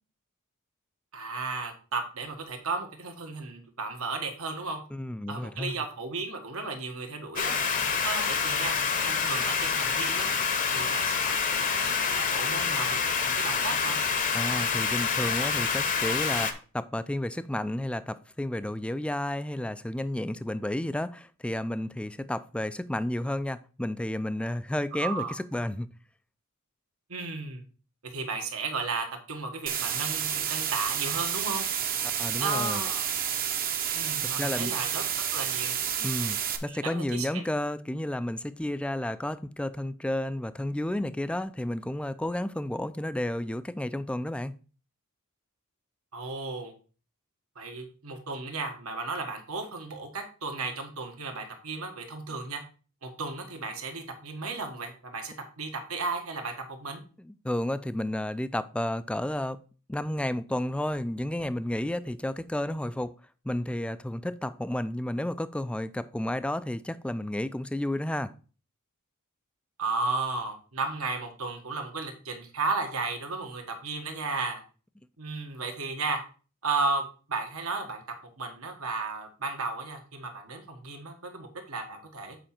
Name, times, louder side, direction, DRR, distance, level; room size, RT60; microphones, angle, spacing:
voice 1, 1.1-4.8 5.3-7.5 8.0-8.8 9.0-10.3 10.7-14.0 24.9-25.3 27.1-27.6 28.1-31.7 32.4-33.0 33.9-35.0 35.3-35.8 36.6-37.4 46.1-46.7 47.5-52.6 53.0-57.0 69.8-74.6 75.2-76.2 76.6-77.0 77.3-78.0 78.4-82.4, right 3 dB, 80° right, 1.5 m, -34 dB
voice 2, 4.9-5.7 14.3-25.9 32.0-32.8 34.2-34.7 36.0-44.5 57.2-59.6 59.9-63.1 63.4-68.3, left 1 dB, 5° left, 0.3 m, -32 dB
sound 1, 7.4-16.5, left 5 dB, 40° left, 0.8 m, -27 dB
sound 2, 29.7-36.6, right 9 dB, 40° right, 0.8 m, -30 dB
7.7 x 4.9 x 4.3 m
head